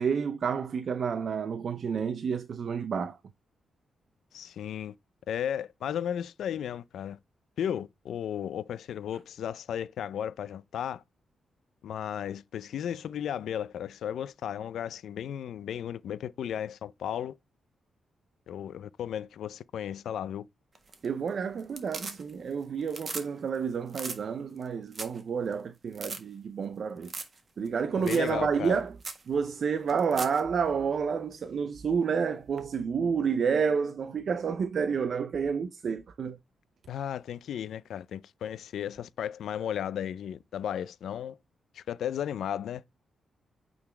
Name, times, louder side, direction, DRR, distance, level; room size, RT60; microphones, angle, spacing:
voice 1, 0.0-3.2 21.0-27.1 27.6-28.9 29.3-36.4, right 6 dB, 55° right, 0.6 m, -29 dB
voice 2, 4.3-4.9 5.3-7.2 7.6-11.0 11.8-17.4 18.5-20.5 28.0-28.8 36.9-41.4 41.7-42.8, left 9 dB, 85° left, 0.4 m, -34 dB
sound 1, 20.7-21.3 21.6-22.5 22.8-23.3 23.5-23.6 23.9-24.2 24.6-24.7 24.9-25.2 25.5-25.6 25.9-26.2 27.0-27.4 27.6-27.7 28.1-28.3 28.6-28.7 29.0-29.2 29.9-30.4 32.6-32.7, right 3 dB, 35° right, 1.4 m, -38 dB
8.8 x 4.0 x 3.3 m
cardioid pair, 115°, 0 cm